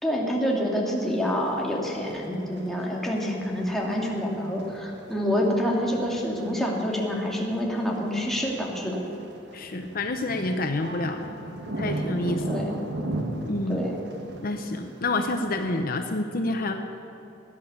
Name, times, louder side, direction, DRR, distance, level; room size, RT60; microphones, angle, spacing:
voice 1, 0.0-9.0 12.5-12.8 13.7-14.0, equal, ahead, -3 dB, 2.2 m, -27 dB
sound 1, 1.0-15.8, right 1 dB, 65° right, 1.4 m, -38 dB
voice 2, 9.5-11.2 11.8-12.5 13.4-13.9 14.4-16.7, left 2 dB, 50° left, 5 dB, 0.8 m, -28 dB
16.5 x 10.0 x 7.0 m, 2.9 s
head